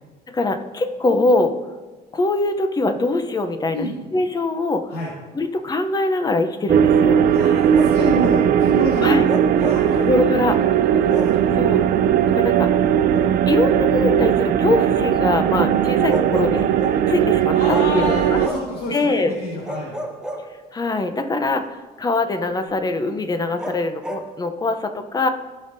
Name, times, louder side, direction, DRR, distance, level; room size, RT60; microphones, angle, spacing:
voice 1, 0.3-1.5 2.1-4.8 5.3-7.2 9.0-9.3 10.0-10.6 11.5-11.8 12.3-12.7 13.5-16.7 17.1-18.4 18.9-19.4 20.7-25.3, left 2 dB, 25° left, 8 dB, 0.7 m, -22 dB
sound 1, 6.7-18.5, right 9 dB, 60° right, 0.5 m, -18 dB
voice 2, 7.2-9.2 9.6-10.2 11.3-11.6 17.5-19.9, left 1 dB, 75° left, -6 dB, 2.1 m, -28 dB
Bark, 7.7-8.5 9.2-9.9 11.1-11.5 13.1-13.3 16.1-17.0 17.7-18.8 19.6-20.9 23.6-24.3, equal, 5° right, 0.9 m, -32 dB
15.5 x 5.4 x 2.7 m, 1.2 s
cardioid pair, 110°, 17 cm